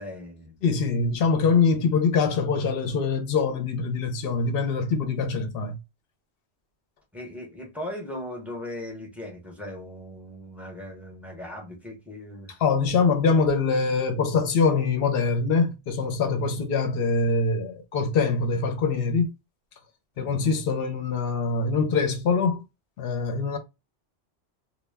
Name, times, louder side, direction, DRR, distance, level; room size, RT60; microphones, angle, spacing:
voice 1, 0.0-0.5 7.1-12.6, left 1 dB, ahead, 0.6 m, -38 dB
voice 2, 0.6-5.8 12.6-19.3 20.2-22.6 23.0-23.6, left 4 dB, 65° left, 0.7 m, -24 dB
2.1 x 2.1 x 3.3 m
omnidirectional pair, 1.2 m